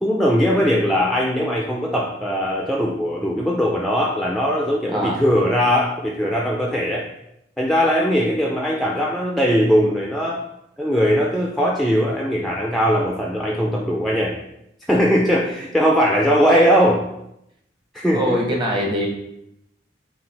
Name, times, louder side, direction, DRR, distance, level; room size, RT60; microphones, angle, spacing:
voice 1, 0.0-7.1 7.6-10.4 10.8-14.4 14.9-17.0 17.9-18.4, equal, ahead, -2 dB, 0.4 m, -20 dB
voice 2, 4.9-5.2 18.1-19.1, equal, 25° right, -2 dB, 0.9 m, -23 dB
5.7 x 2.3 x 3.3 m, 0.81 s
head